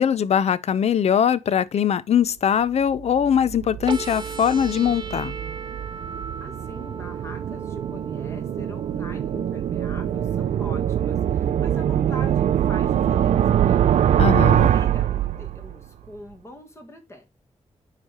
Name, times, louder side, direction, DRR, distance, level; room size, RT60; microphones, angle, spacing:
voice 1, 0.0-5.3 14.2-14.7, left 8 dB, 70° left, 0.5 m, -21 dB
sound 1, 2.9-15.8, right 10 dB, 90° right, 0.4 m, -23 dB
sound 2, 3.9-11.9, right 5 dB, 40° right, 0.8 m, -37 dB
voice 2, 6.4-17.3, left 1 dB, 25° left, 1.6 m, -43 dB
9.8 x 3.3 x 4.7 m
wide cardioid pair, 150°, 11 cm